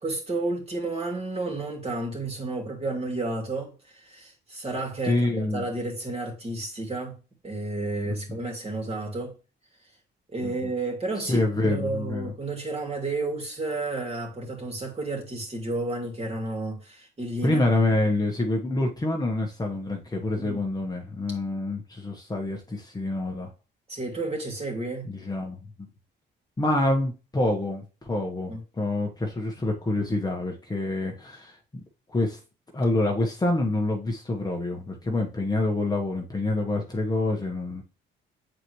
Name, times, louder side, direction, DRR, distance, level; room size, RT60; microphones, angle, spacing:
voice 1, 0.0-7.2 7.4-9.3 10.3-17.6 20.4-20.6 23.9-25.1 28.5-28.6, right 2 dB, 30° right, 2.9 m, -31 dB
voice 2, 5.0-5.7 10.4-10.7 11.2-12.3 17.4-23.5 25.0-25.6 26.6-31.8 32.1-32.4 32.7-37.8, left 2 dB, 20° left, 1.2 m, -27 dB
7.7 x 4.2 x 3.1 m
cardioid pair, 90°, 20 cm